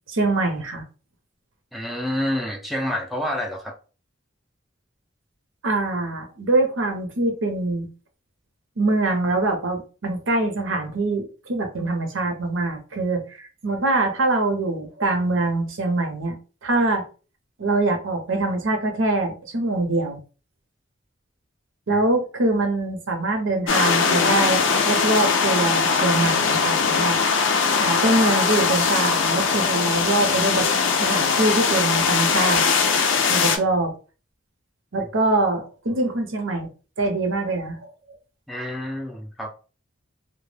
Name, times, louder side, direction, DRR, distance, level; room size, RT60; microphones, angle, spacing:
voice 1, 0.1-0.8 5.6-7.9 8.8-17.0 17.6-20.2 21.9-27.2 27.8-30.7 31.0-32.6 33.3-33.9 34.9-36.7 37.0-37.8, right 2 dB, 85° right, 0.7 m, -23 dB
voice 2, 1.7-3.7 21.9-22.0 35.0-35.1 38.5-39.5, left 1 dB, ahead, 0.3 m, -28 dB
sound 1, 23.7-33.6, left 5 dB, 80° left, 0.5 m, -20 dB
2.2 x 2.1 x 3.2 m
head